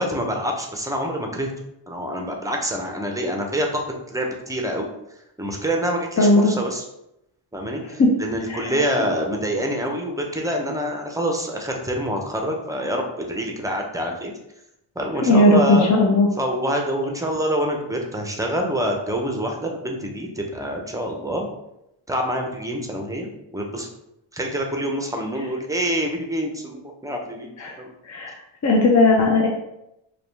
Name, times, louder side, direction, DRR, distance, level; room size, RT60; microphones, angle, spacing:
voice 1, 0.0-1.5 1.9-3.8 4.1-4.9 5.4-6.8 7.5-14.3 15.0-15.9 16.4-21.5 22.1-23.9 24.3-27.5 27.8-27.9, equal, 5° right, 1 dB, 0.6 m, -26 dB
voice 2, 6.2-6.5 8.0-8.1 8.5-8.7 15.2-16.3 27.6-27.7 28.1-28.3 28.6-29.5, left 2 dB, 35° left, -1 dB, 0.6 m, -16 dB
4.9 x 2.3 x 3.3 m, 0.84 s
wide cardioid pair, 120°, 49 cm